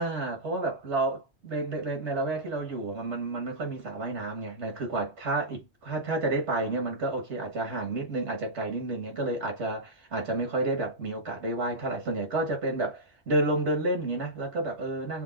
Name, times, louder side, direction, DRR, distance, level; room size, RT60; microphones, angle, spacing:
voice 1, 0.0-15.2, right 2 dB, 90° right, 1.8 m, -30 dB
6.9 x 2.4 x 2.4 m
omnidirectional pair, 1.1 m